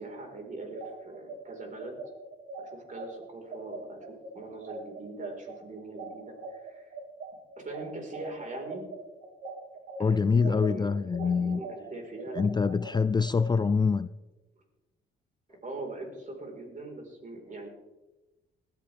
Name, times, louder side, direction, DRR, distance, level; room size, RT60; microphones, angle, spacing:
voice 1, 0.0-2.0 2.6-6.9 7.6-8.9 10.0-12.5 15.6-17.7, right 2 dB, 40° right, 1 dB, 4.8 m, -42 dB
sound 1, 0.6-10.0 10.4-13.5, right 3 dB, 75° right, 3.2 m, -42 dB
voice 2, 10.0-11.6 12.4-14.1, left 5 dB, 20° left, 15 dB, 0.4 m, -25 dB
19.5 x 13.5 x 3.6 m, 1.1 s
cardioid pair, 90°, 20 cm